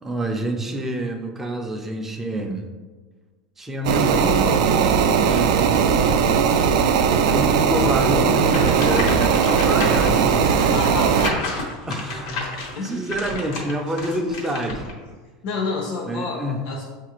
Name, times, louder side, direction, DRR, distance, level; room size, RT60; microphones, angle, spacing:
voice 1, 0.0-2.7 3.6-5.6 5.9-10.3 11.9-14.9 16.1-16.6, right 1 dB, 10° right, 3 dB, 0.4 m, -27 dB
sound 1, 3.8-11.3, right 6 dB, 80° right, 0.3 m, -18 dB
sound 2, 8.4-14.9, left 2 dB, 80° left, 1.1 m, -31 dB
voice 2, 10.4-11.4 12.7-12.9 15.4-16.8, left 3 dB, 55° left, -3 dB, 0.6 m, -29 dB
6.5 x 2.4 x 3.0 m, 1.4 s
supercardioid pair, 160°, 3 cm